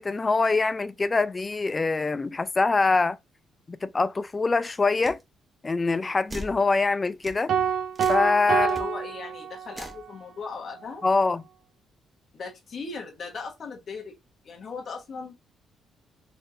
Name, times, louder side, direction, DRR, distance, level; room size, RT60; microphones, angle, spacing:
voice 1, 0.0-3.2 3.7-5.2 5.6-7.5 8.1-8.8 11.0-11.4, left 3 dB, 25° left, 0.3 m, -24 dB
sound 1, 5.0-5.2 6.3-6.6 7.2-7.4 7.9-8.3 8.7-8.8 9.7-10.0, right 1 dB, 20° right, 0.9 m, -38 dB
sound 2, 7.5-10.0, right 8 dB, 65° right, 0.5 m, -27 dB
voice 2, 8.5-11.0 12.3-14.1 14.4-15.3, left 4 dB, 50° left, 1.2 m, -38 dB
4.2 x 3.0 x 2.6 m
cardioid pair, 90°, 0 cm